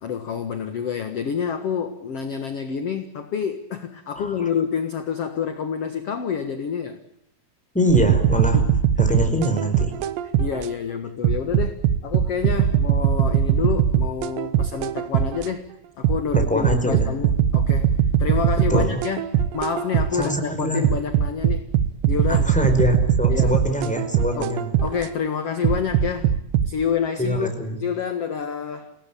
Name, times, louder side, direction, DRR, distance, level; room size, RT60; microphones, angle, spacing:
voice 1, 0.0-7.0 8.5-8.8 10.4-15.7 16.0-21.7 22.1-22.5 23.3-23.6 24.4-26.4 26.6-27.5 27.8-28.9, left 7 dB, 55° left, 8 dB, 1.8 m, -28 dB
voice 2, 4.1-4.5 7.7-8.6 9.0-10.0 16.3-17.1 18.7-19.0 20.1-20.9 22.3-24.7 27.2-27.8, equal, ahead, 5 dB, 4.4 m, -24 dB
sound 1, 7.9-10.7 11.2-15.5 16.0-20.3 20.8-25.1 25.6-26.7, right 9 dB, 85° right, 3.4 m, -21 dB
29.0 x 18.0 x 8.6 m, 0.77 s
omnidirectional pair, 4.9 m